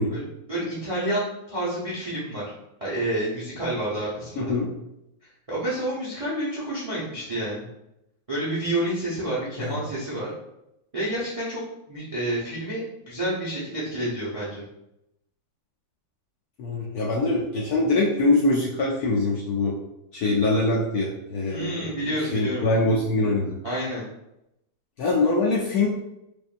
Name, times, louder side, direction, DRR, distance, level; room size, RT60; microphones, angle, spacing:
voice 1, 0.1-2.4 2.8-4.5 5.5-7.7 8.3-10.3 10.9-11.6 11.9-14.6 21.5-22.8 23.6-24.1, right 1 dB, 35° right, -7 dB, 0.5 m, -29 dB
voice 2, 4.4-4.7 9.6-9.8 16.6-19.7 20.1-23.6 25.0-25.9, left 2 dB, 70° left, -4 dB, 0.9 m, -23 dB
5.0 x 2.6 x 2.5 m, 0.86 s
omnidirectional pair, 2.1 m